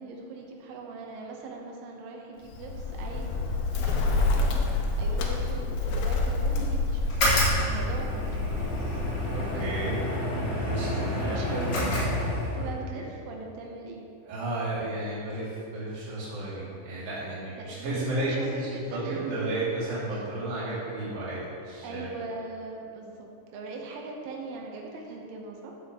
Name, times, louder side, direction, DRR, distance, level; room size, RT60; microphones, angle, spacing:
voice 1, 0.0-4.5 5.0-8.8 10.8-12.0 12.4-14.1 17.6-19.6 20.1-20.3 21.8-25.7, right 3 dB, 85° right, 0 dB, 3.5 m, -40 dB
Bird, 2.4-10.2, left 3 dB, 80° left, 2.3 m, -28 dB
sound 1, 7.0-12.7, left 1 dB, 45° left, 3.2 m, -28 dB
voice 2, 9.3-10.0 10.4-11.4 12.6-13.0 14.2-22.1, right 2 dB, 55° right, -10 dB, 3.4 m, -33 dB
14.0 x 6.7 x 3.6 m, 2.5 s
omnidirectional pair, 5.5 m